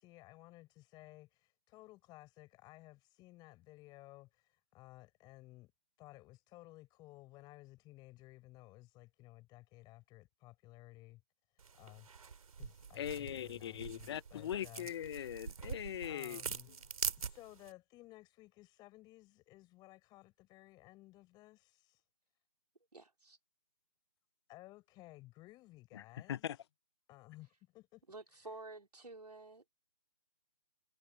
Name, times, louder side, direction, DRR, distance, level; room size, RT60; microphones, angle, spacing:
voice 1, 0.0-5.7 6.0-11.2 11.5-12.1 12.6-15.3 16.0-16.7 17.1-22.0 24.5-26.6 27.1-28.0 28.3-28.5, left 18 dB, 20° left, 6.7 m, -57 dB
sound 1, 11.6-17.7, right 6 dB, 65° right, 3.5 m, -44 dB
voice 2, 12.9-16.4 25.9-26.0 26.3-26.6, left 10 dB, 45° left, 0.8 m, -41 dB
voice 3, 22.9-23.4 28.1-29.6, right 3 dB, 90° right, 3.7 m, -50 dB
figure-of-eight pair, 140°, 20 cm